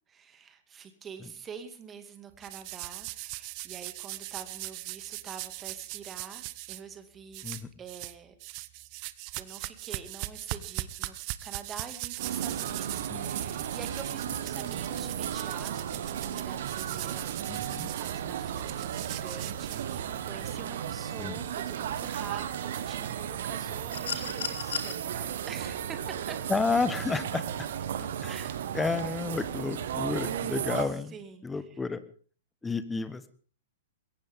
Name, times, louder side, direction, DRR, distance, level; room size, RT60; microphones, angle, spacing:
voice 1, 0.1-7.4 7.8-8.3 9.4-11.1 11.4-17.4 17.8-26.4 28.3-28.7 31.1-31.8 32.6-32.8, right 6 dB, 20° right, 8 dB, 2.3 m, -46 dB
sound 1, 2.4-6.8 7.3-8.2 8.4-20.3, right 20 dB, 35° right, 0.8 m, -40 dB
sound 2, 12.2-30.9, right 9 dB, 55° right, 1.5 m, -34 dB
voice 2, 17.5-17.9 21.2-21.4 26.5-27.7 28.0-28.4 28.7-31.1 31.4-32.0 32.6-33.3, left 4 dB, 10° left, 13 dB, 1.3 m, -31 dB
sound 3, 23.9-24.9 26.4-26.6, left 7 dB, 60° left, 2.1 m, -34 dB
21.5 x 18.0 x 3.7 m, 0.43 s
figure-of-eight pair, 105°, 0 cm